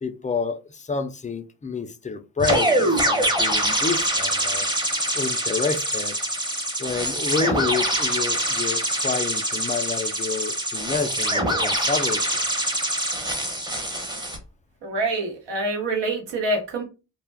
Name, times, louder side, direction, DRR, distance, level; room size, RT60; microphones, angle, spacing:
voice 1, 0.0-4.7 5.1-6.1 6.8-12.4, left 4 dB, 20° left, 0.3 m, -29 dB
sound 1, 2.4-14.4, right 1 dB, 10° right, 0.7 m, -24 dB
voice 2, 14.8-16.8, right 2 dB, 80° right, 1.0 m, -26 dB
2.3 x 2.1 x 3.2 m
cardioid pair, 60°, 43 cm